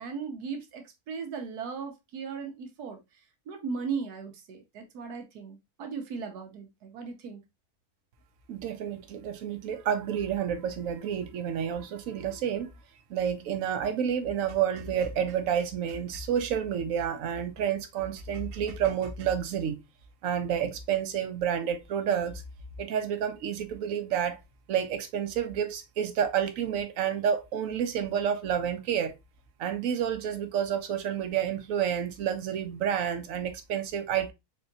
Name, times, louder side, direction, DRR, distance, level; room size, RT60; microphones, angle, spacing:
voice 1, 0.0-3.0 3.5-7.4, right 5 dB, 85° right, 1.4 m, -37 dB
voice 2, 8.5-12.7 13.1-19.8 20.2-22.4 22.8-24.4 24.7-29.1 29.6-34.3, right 8 dB, 65° right, 1.0 m, -29 dB
3.7 x 3.4 x 2.6 m
omnidirectional pair, 1.6 m